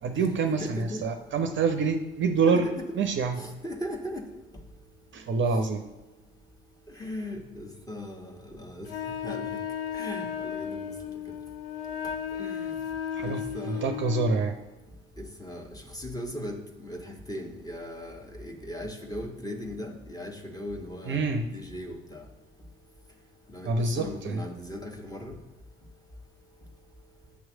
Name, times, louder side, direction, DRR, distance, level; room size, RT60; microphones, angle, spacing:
voice 1, 0.0-2.6 3.0-3.4 5.1-5.8 13.1-13.4 13.7-14.5 21.1-21.4 23.6-24.4, right 4 dB, 40° right, 6 dB, 0.7 m, -26 dB
voice 2, 0.6-1.0 2.5-2.8 3.4-4.2 7.0-8.9 9.2-9.5 9.9-10.8 12.4-12.6 13.2-13.9 15.4-15.6 15.9-16.6 16.8-21.3 21.5-22.2 23.5-23.7 24.0-25.3, left 1 dB, 10° left, 2 dB, 1.3 m, -38 dB
Wind instrument woodwind instrument, 8.9-14.4, left 8 dB, 80° left, 0.5 m, -34 dB
8.2 x 3.1 x 6.2 m, 1.1 s
hypercardioid pair, 55°, 29 cm